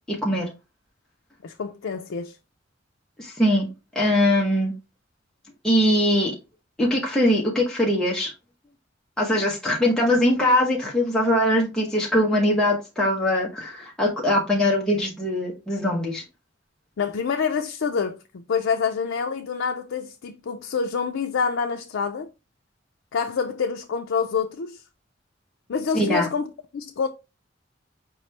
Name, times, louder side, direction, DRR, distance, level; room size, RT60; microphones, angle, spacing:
voice 1, 0.1-0.5 3.2-3.7 3.9-4.7 5.6-6.3 6.8-8.3 9.2-16.2 25.9-26.3, left 1 dB, 5° left, 0.9 m, -21 dB
voice 2, 1.4-2.4 17.0-22.3 23.1-24.8 25.7-27.1, left 6 dB, 85° left, 0.4 m, -27 dB
4.9 x 3.0 x 3.2 m
head